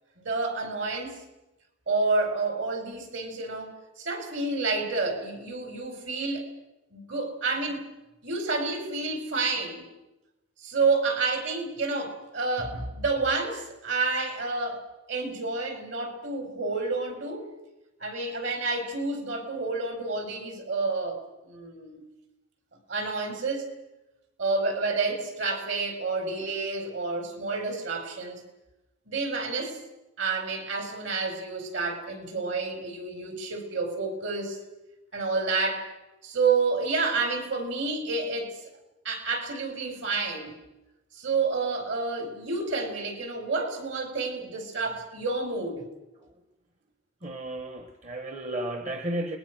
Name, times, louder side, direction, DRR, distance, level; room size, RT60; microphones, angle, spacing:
voice 1, 0.2-1.1 1.9-6.5 6.9-7.8 8.2-9.8 10.6-14.8 15.1-17.5 18.0-22.0 22.9-23.7 24.4-28.4 29.1-29.8 30.2-34.6 35.1-35.9 36.2-38.6 39.0-40.5 41.1-45.8, right 3 dB, 60° right, 5 dB, 4.9 m, -29 dB
voice 2, 47.2-49.4, right 1 dB, 35° right, 7 dB, 1.3 m, -33 dB
29.0 x 20.5 x 6.2 m, 0.98 s
head